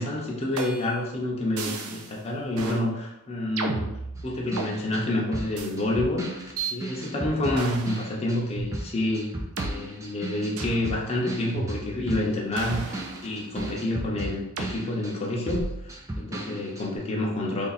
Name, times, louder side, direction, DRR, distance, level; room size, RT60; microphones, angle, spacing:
voice 1, 0.0-17.7, left 1 dB, 30° left, -3 dB, 0.8 m, -29 dB
sound 1, 0.6-1.0 1.6-2.1 2.6-2.8 3.6-4.7 5.6-5.7 6.6-6.7 7.6-8.0 8.6-8.7 9.6-9.7 10.6-10.8 11.6-12.1 12.6-13.8 14.6-14.8 15.6-15.9, right 3 dB, 85° right, 0.6 m, -33 dB
sound 2, 4.1-8.4 8.7-15.2 15.5-16.9, right 1 dB, 15° right, 0.5 m, -36 dB
3.5 x 2.7 x 4.1 m, 0.89 s
head